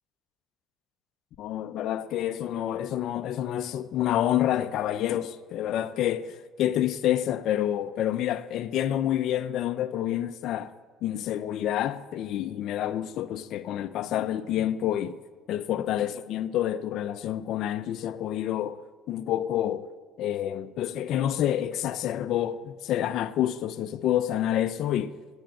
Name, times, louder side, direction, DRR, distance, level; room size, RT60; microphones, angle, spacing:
voice 1, 1.4-10.7 11.0-15.2 15.5-18.8 19.1-19.9 20.2-25.2, left 11 dB, 65° left, 0.6 m, -28 dB
10.5 x 7.9 x 8.8 m
cardioid pair, 100°, 0 cm